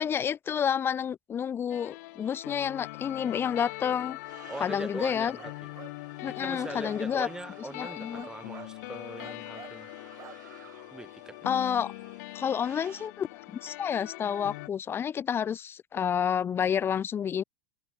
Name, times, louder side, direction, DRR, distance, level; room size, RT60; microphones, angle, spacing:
voice 1, 0.0-4.2 4.6-5.3 6.2-7.3 7.7-8.3 11.5-11.9 12.3-13.3 13.6-17.4, left 8 dB, 25° left, 0.6 m, -29 dB
sound 1, 1.7-14.7, left 23 dB, 65° left, 2.1 m, -42 dB
sound 2, 4.2-13.1, right 10 dB, 90° right, 3.2 m, -55 dB
voice 2, 4.5-5.5 6.3-9.9 10.9-11.4, right 2 dB, 5° right, 2.7 m, -41 dB
sound 3, 5.0-5.9 6.5-7.4 7.8-8.7 9.2-9.8 10.2-10.4, right 10 dB, 30° right, 7.4 m, -48 dB
hypercardioid pair, 115°, 9 cm